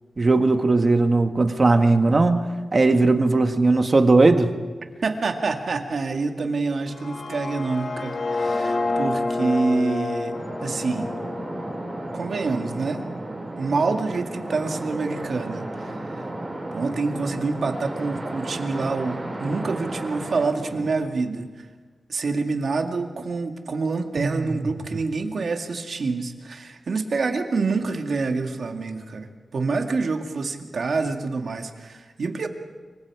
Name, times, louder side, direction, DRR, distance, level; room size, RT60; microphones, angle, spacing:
voice 1, 0.2-4.5 24.2-24.7, right 3 dB, 40° right, 6 dB, 1.6 m, -18 dB
voice 2, 5.0-11.1 12.1-13.0 13.6-16.2 16.7-21.7 22.1-29.3 29.5-32.5, right 3 dB, 65° right, 4 dB, 2.1 m, -27 dB
sound 1, 6.9-12.8, left 2 dB, 60° left, 2.0 m, -29 dB
sound 2, 10.3-20.9, right 1 dB, 25° right, 7.7 m, -34 dB
26.5 x 24.5 x 4.9 m, 1.4 s
wide cardioid pair, 95°, 0 cm